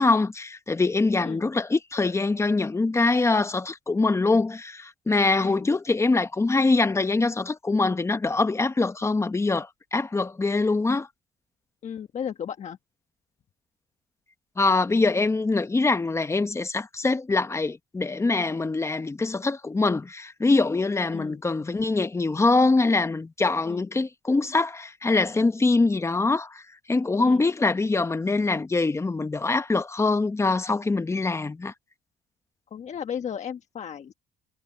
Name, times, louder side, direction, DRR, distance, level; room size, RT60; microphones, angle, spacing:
voice 1, 0.0-11.1 14.6-26.6 26.9-31.7, left 3 dB, 15° left, 1.0 m, -24 dB
voice 2, 11.8-12.8 21.1-21.4 23.6-23.9 27.2-27.4 32.7-34.1, left 8 dB, 45° left, 1.3 m, -35 dB
cardioid pair, 110°, 17 cm